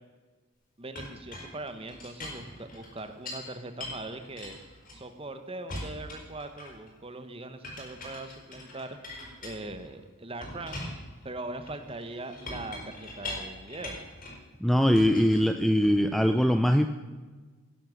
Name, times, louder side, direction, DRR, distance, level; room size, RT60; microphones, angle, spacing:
voice 1, 0.8-10.8 11.2-14.0, right 2 dB, 25° right, 8 dB, 1.2 m, -41 dB
Chink clink, 0.9-3.5 3.8-5.3 5.7-6.9 7.6-9.9 10.4-14.4 14.9-16.1, left 1 dB, 40° left, 5.2 m, -42 dB
voice 2, 14.6-16.9, equal, ahead, 7 dB, 0.5 m, -22 dB
17.5 x 11.0 x 6.3 m, 1.3 s
head